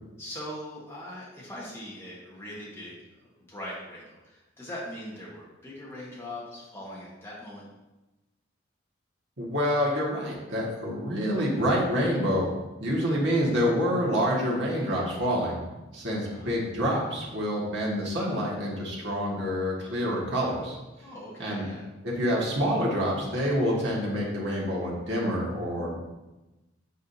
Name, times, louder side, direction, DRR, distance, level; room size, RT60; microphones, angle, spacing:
voice 1, 0.2-3.0 3.2-7.6 16.3-16.6 21.0-21.8, left 1 dB, 15° left, -6 dB, 1.5 m, -41 dB
voice 2, 9.4-12.5 12.8-15.6 15.9-20.7 21.4-21.6 22.0-26.0, equal, 60° right, -4 dB, 1.7 m, -27 dB
8.2 x 4.9 x 2.8 m, 1.0 s
head